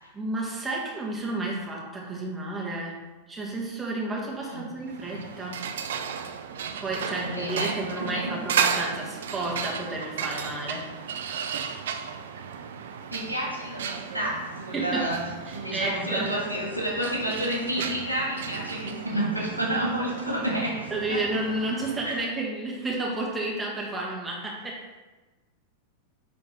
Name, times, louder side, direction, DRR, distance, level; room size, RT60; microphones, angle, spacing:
voice 1, 0.1-3.0 3.3-5.7 6.8-10.9 14.7-15.1 15.5-16.3 20.9-24.9, right 2 dB, 10° right, -3 dB, 1.5 m, -31 dB
sound 1, 4.8-22.3, right 7 dB, 60° right, 0.4 m, -34 dB
voice 2, 7.2-8.3 13.1-15.2 15.5-21.2 22.0-22.2, right 1 dB, 90° left, -3 dB, 1.5 m, -30 dB
9.3 x 3.4 x 3.5 m, 1.2 s
figure-of-eight pair, 90°, 0 cm